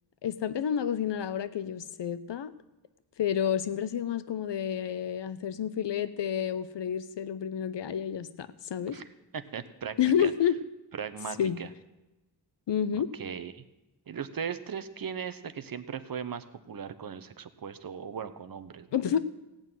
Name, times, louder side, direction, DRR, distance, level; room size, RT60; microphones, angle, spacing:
voice 1, 0.2-2.5 3.2-9.0 10.0-10.6 11.4-11.6 12.7-13.1 18.9-19.2, left 9 dB, 75° left, 13 dB, 0.8 m, -29 dB
voice 2, 9.3-10.3 11.0-11.7 12.9-13.6 14.1-18.9, right 7 dB, 55° right, 11 dB, 0.9 m, -38 dB
17.0 x 6.5 x 9.1 m, 1.0 s
wide cardioid pair, 170°, 42 cm